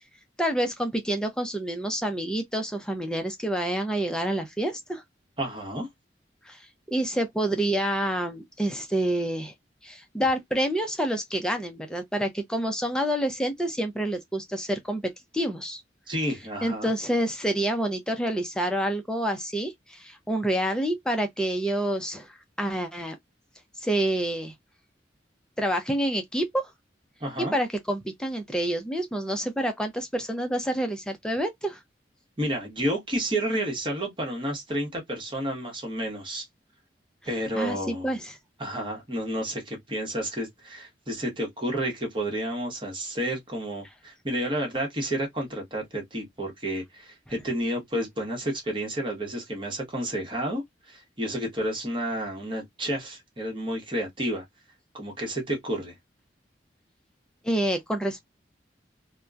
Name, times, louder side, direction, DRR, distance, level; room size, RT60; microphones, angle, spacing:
voice 1, 0.4-5.0 6.4-6.6 6.9-9.5 9.8-15.8 16.6-23.1 23.8-24.5 25.6-26.7 27.4-31.8 37.6-38.4 57.4-58.2, right 1 dB, 5° left, 0.5 m, -28 dB
voice 2, 5.4-5.9 16.1-16.9 27.2-27.5 32.4-36.5 37.2-38.1 38.6-54.4 54.9-55.9, right 1 dB, 30° right, 1.0 m, -30 dB
2.8 x 2.2 x 2.3 m
head